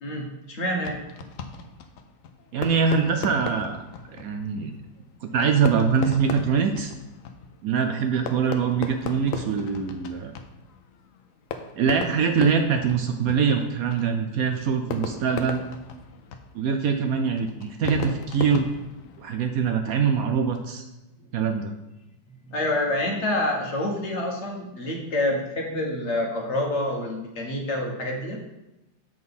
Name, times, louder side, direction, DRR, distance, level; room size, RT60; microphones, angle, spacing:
voice 1, 0.0-1.0 22.4-28.4, left 1 dB, 40° left, 1 dB, 1.3 m, -27 dB
Fireworks, 0.8-19.6, left 5 dB, 70° left, 0.8 m, -37 dB
voice 2, 2.5-3.8 4.1-4.7 5.2-6.9 7.6-10.3 11.8-15.6 16.5-18.7 19.2-20.9 21.3-21.7, right 6 dB, 75° right, 6 dB, 0.8 m, -23 dB
7.6 x 4.1 x 5.4 m, 0.98 s
omnidirectional pair, 2.0 m